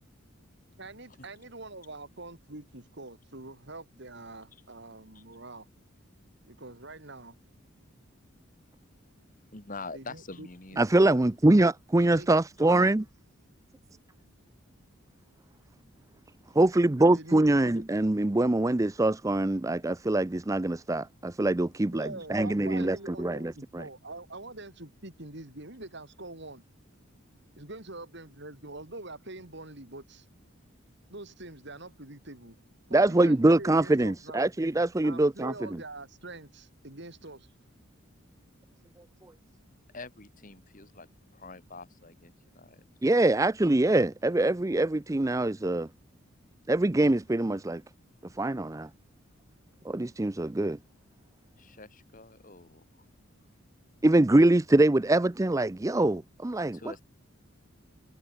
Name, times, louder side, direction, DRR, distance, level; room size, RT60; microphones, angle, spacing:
voice 1, 0.8-5.7 6.5-7.4 9.9-10.5 10.7-10.8 12.0-12.3 17.1-17.8 21.9-26.6 27.6-30.3 31.1-32.6 32.9-34.5 35.0-37.5, right 2 dB, 55° right, 3.5 m, -44 dB
voice 2, 9.5-11.2 39.9-41.1 41.3-42.8 51.6-53.1 56.7-57.0, left 3 dB, 40° left, 2.8 m, -45 dB
voice 3, 10.8-13.0 16.6-23.8 32.9-35.5 43.0-45.9 46.7-47.8 48.4-48.9 49.8-50.8 54.0-56.8, right 2 dB, 15° right, 0.5 m, -24 dB
head